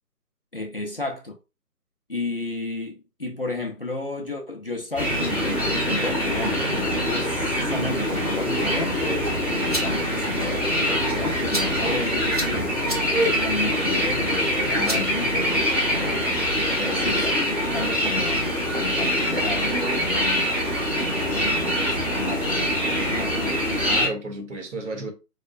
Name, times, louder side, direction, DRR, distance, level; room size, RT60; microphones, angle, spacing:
voice 1, 0.5-1.4 2.1-15.6 15.9-16.4 16.8-18.4 18.8-20.6 20.9-23.6, left 3 dB, 40° left, 0.5 m, -32 dB
sound 1, 4.9-24.1, equal, 5° right, 0.9 m, -24 dB
sound 2, 9.4-16.0, right 1 dB, 25° right, 0.5 m, -37 dB
voice 2, 14.7-15.0 16.6-17.0 23.8-25.1, right 2 dB, 50° right, 0.8 m, -32 dB
4.1 x 2.1 x 2.5 m
figure-of-eight pair, 150°, 47 cm